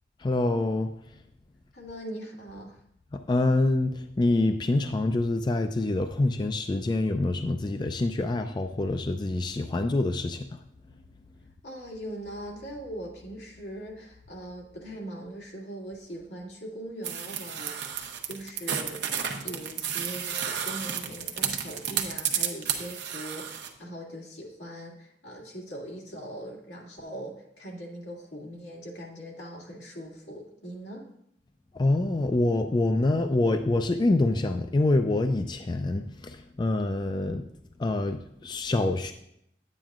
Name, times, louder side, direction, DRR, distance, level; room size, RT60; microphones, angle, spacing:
voice 1, 0.2-0.9 3.1-10.5 31.7-37.5 37.8-39.1, left 2 dB, 25° left, 7 dB, 0.3 m, -26 dB
voice 2, 1.7-2.8 11.6-19.0 19.4-31.1, right 1 dB, 90° left, -3 dB, 2.2 m, -41 dB
sound 1, 17.0-23.7, right 8 dB, 80° right, 0.8 m, -32 dB
10.0 x 8.9 x 2.4 m, 0.74 s
head